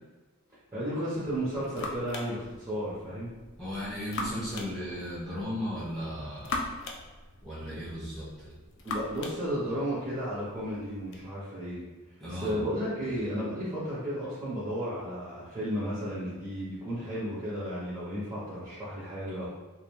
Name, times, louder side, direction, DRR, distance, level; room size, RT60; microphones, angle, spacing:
voice 1, 0.7-3.3 8.8-11.8 12.3-19.5, equal, 15° right, -11 dB, 0.6 m, -33 dB
sound 1, 1.1-11.2, left 3 dB, 55° left, 0.3 m, -42 dB
voice 2, 3.6-6.6 7.4-8.5 12.2-12.6, equal, ahead, -11 dB, 1.0 m, -36 dB
2.3 x 2.1 x 2.9 m, 1.2 s
head